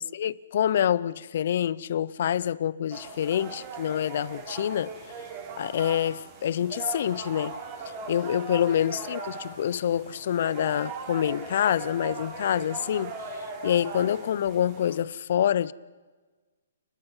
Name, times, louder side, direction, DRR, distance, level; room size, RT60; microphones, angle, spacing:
voice 1, 0.0-4.9 5.6-7.6 8.1-13.1 13.6-15.7, left 10 dB, 55° left, 0.6 m, -26 dB
sound 1, 2.9-15.0, right 4 dB, 30° right, 6.4 m, -39 dB
29.0 x 20.5 x 5.6 m
hypercardioid pair, 155°, 0 cm